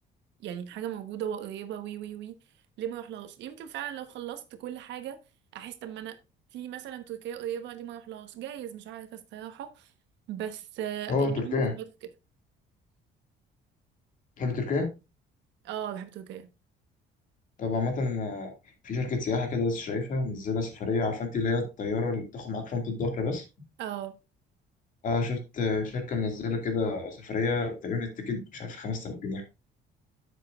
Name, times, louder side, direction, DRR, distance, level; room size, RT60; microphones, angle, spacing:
voice 1, 0.4-2.3 2.8-5.2 5.5-6.2 6.5-9.9 10.3-11.8 15.6-16.5 23.8-24.1, right 10 dB, 75° right, 1.2 m, -37 dB
voice 2, 11.1-11.7 14.4-14.9 17.6-18.5 18.8-23.4 25.0-29.4, left 3 dB, 45° left, 2.2 m, -29 dB
10.0 x 7.5 x 2.4 m
cardioid pair, 165°, 19 cm